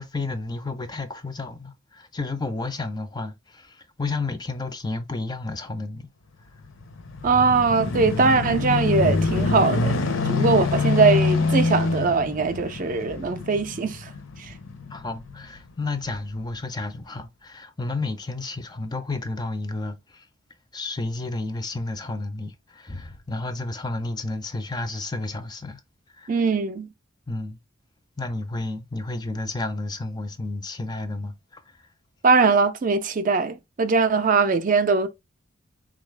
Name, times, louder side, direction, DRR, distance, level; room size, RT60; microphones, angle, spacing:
voice 1, 0.0-6.1 14.9-20.3 20.7-25.8 26.1-26.3 27.3-27.6 28.2-31.6, left 2 dB, 20° left, 0.4 m, -31 dB
sound 1, 6.6-15.4 16.1-16.2, left 3 dB, 65° left, 0.6 m, -25 dB
voice 2, 7.2-10.0 10.3-14.1 14.4-14.5 26.3-26.9 32.2-35.1, right 4 dB, 40° right, 0.4 m, -21 dB
3.9 x 2.3 x 3.2 m
head